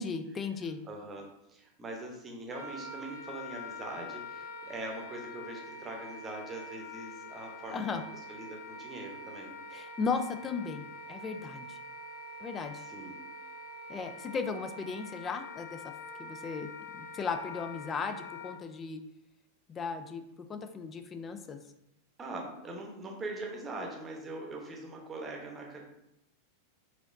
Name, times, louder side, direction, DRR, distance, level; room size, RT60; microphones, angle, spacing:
voice 1, 0.0-0.8 7.7-8.0 9.7-11.8 12.4-12.8 13.9-15.8 16.2-19.0 19.7-20.2 20.5-21.6, left 5 dB, 25° left, 8 dB, 0.4 m, -36 dB
voice 2, 0.9-8.0 8.3-9.6 10.8-10.9 12.8-13.2 22.2-25.8, right 2 dB, 20° right, 0 dB, 0.9 m, -42 dB
Wind instrument woodwind instrument, 2.5-18.5, left 2 dB, 55° left, 1.2 m, -45 dB
4.8 x 2.9 x 2.6 m, 0.80 s
figure-of-eight pair, 90°, 0 cm